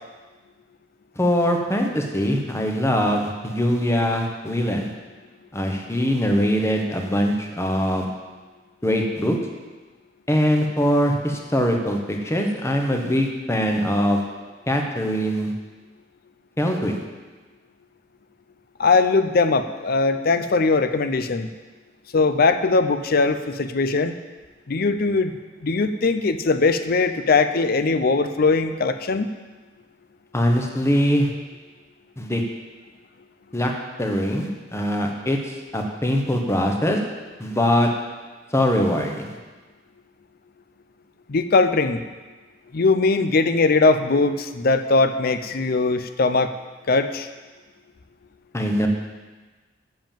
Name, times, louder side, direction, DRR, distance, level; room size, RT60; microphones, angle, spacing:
voice 1, 1.2-4.9 5.5-8.1 8.8-9.4 10.3-14.2 14.7-15.5 16.6-17.0 30.3-31.3 32.2-32.4 33.5-33.7 34.0-37.0 37.4-37.9 38.5-39.3 48.5-48.9, equal, 15° left, 2 dB, 1.0 m, -22 dB
voice 2, 18.8-21.5 22.1-24.1 24.7-25.3 25.6-29.3 41.3-42.0 42.7-46.5 46.9-47.3, left 3 dB, 50° left, 10 dB, 0.5 m, -20 dB
7.7 x 7.3 x 7.4 m, 1.3 s
head